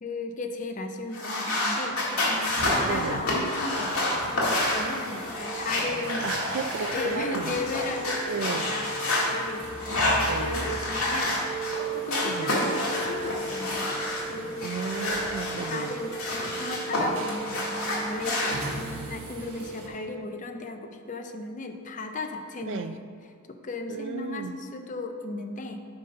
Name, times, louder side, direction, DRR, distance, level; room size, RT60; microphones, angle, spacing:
voice 1, 0.0-3.9 4.3-6.3 6.9-13.9 14.3-14.8 15.6-23.1 23.5-25.8, left 3 dB, 35° left, 6 dB, 0.5 m, -36 dB
sound 1, 1.1-9.3 9.8-11.8 12.1-14.2 14.6-17.0 17.3-18.5, left 1 dB, 80° left, 2.0 m, -29 dB
sound 2, 2.4-19.9, right 2 dB, 90° right, 1.1 m, -37 dB
voice 2, 2.8-3.2 6.2-7.5 8.3-8.6 10.3-10.6 12.2-12.6 14.6-16.0 22.6-23.0 23.9-24.5, right 5 dB, 60° right, 11 dB, 0.3 m, -34 dB
8.7 x 3.9 x 5.4 m, 2.2 s
head